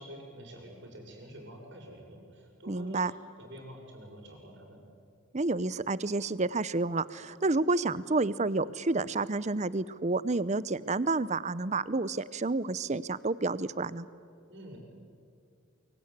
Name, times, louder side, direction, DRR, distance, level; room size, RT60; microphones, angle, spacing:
voice 1, 0.0-3.0 3.4-4.8 14.5-14.8, equal, 55° right, 1 dB, 6.5 m, -47 dB
voice 2, 2.7-3.1 5.3-14.1, right 3 dB, 35° right, 18 dB, 0.7 m, -30 dB
24.0 x 23.5 x 9.8 m, 2.4 s
head